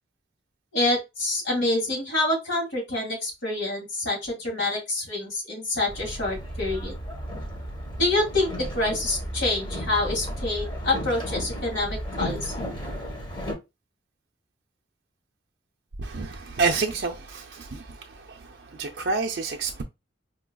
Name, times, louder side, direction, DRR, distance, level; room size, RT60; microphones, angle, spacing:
voice 1, 0.7-6.9 8.0-12.5, left 2 dB, 80° left, 2.0 m, -27 dB
Boat Water vehicle, 5.9-13.5, equal, 25° left, 1.1 m, -34 dB
voice 2, 16.0-17.4 18.8-19.8, right 4 dB, 60° right, 0.4 m, -27 dB
4.6 x 2.4 x 2.2 m
head